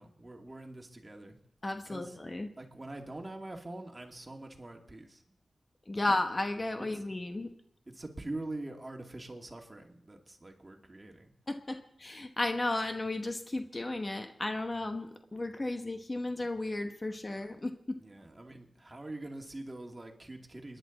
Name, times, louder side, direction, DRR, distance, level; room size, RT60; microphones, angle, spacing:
voice 1, 0.0-1.4 1.9-2.2 2.6-5.2 5.9-6.0 6.8-7.0 7.9-11.3 18.0-20.8, right 2 dB, 30° right, 2 dB, 2.4 m, -44 dB
voice 2, 1.6-2.5 5.9-7.5 11.5-18.0, left 2 dB, 35° left, 7 dB, 1.0 m, -34 dB
29.0 x 10.5 x 4.0 m, 0.73 s
cardioid pair, 55°, 0 cm